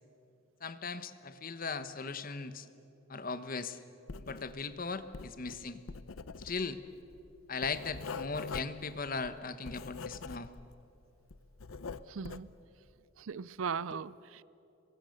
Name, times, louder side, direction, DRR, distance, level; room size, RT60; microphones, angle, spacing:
voice 1, 0.6-2.7 3.1-3.8 4.3-5.8 6.4-6.8 7.5-10.5, left 4 dB, 45° left, 1.1 m, -38 dB
Writing, 4.1-4.7 5.0-10.8 11.1-12.6, left 4 dB, 85° left, 0.7 m, -44 dB
voice 2, 12.1-12.5 13.2-14.4, right 6 dB, 75° right, 0.5 m, -38 dB
28.0 x 23.0 x 6.6 m
head